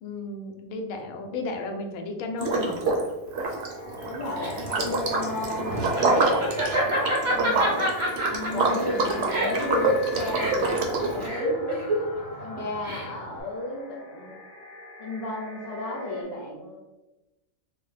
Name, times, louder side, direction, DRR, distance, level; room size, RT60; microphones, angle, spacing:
voice 1, 0.0-2.8 8.3-9.2, left 2 dB, 85° left, 3 dB, 1.0 m, -34 dB
Liquid, 2.4-3.1 3.3-11.3, right 3 dB, 60° right, 0.8 m, -27 dB
sound 1, 3.4-16.2, left 2 dB, 15° left, 1.1 m, -42 dB
Laughter, 4.0-13.4, right 1 dB, 35° right, 0.5 m, -28 dB
voice 2, 4.1-7.9 8.5-11.8 12.4-14.3 15.0-16.8, left 2 dB, 55° left, -2 dB, 0.8 m, -34 dB
3.3 x 2.1 x 3.2 m, 1.0 s
omnidirectional pair, 1.4 m